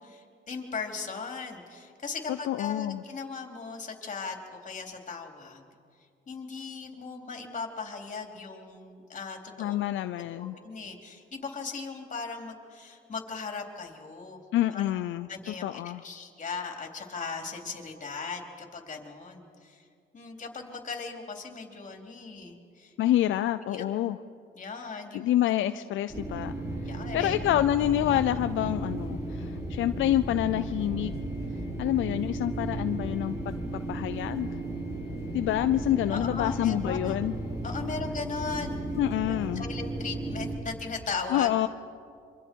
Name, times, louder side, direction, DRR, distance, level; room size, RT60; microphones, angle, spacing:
voice 1, 0.1-5.7 6.3-9.8 10.2-14.4 14.7-14.9 15.3-19.8 20.1-22.9 23.7-24.1 24.5-25.3 26.8-27.4 36.1-37.2 37.6-38.8 39.3-41.5, left 4 dB, 40° left, 2 dB, 3.6 m, -38 dB
voice 2, 2.3-3.0 9.6-10.6 14.5-16.0 23.0-24.2 25.1-26.5 26.8-31.1 31.8-33.6 33.9-34.5 35.3-37.3 39.0-39.7 41.3-41.7, left 13 dB, 80° left, 11 dB, 0.6 m, -27 dB
sound 1, 26.1-40.6, right 1 dB, 15° right, 5.6 m, -34 dB
26.5 x 24.5 x 4.7 m, 2.3 s
cardioid pair, 90°, 20 cm